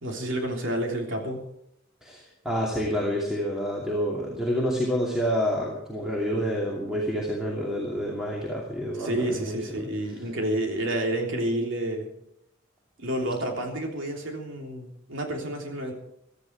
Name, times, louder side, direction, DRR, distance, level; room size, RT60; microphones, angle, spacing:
voice 1, 0.0-1.5 9.0-12.1 13.0-15.9, right 1 dB, 70° right, 1 dB, 3.4 m, -29 dB
voice 2, 2.0-9.6, equal, 5° right, -3 dB, 2.6 m, -28 dB
16.0 x 13.5 x 4.7 m, 0.77 s
head